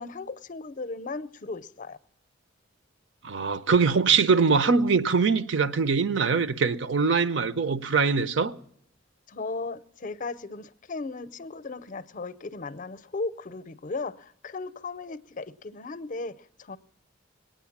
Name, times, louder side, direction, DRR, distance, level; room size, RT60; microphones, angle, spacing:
voice 1, 0.0-2.0 9.3-16.8, left 3 dB, 40° left, 0.6 m, -36 dB
voice 2, 3.2-8.5, right 5 dB, 65° right, 0.7 m, -23 dB
21.5 x 9.2 x 7.2 m
head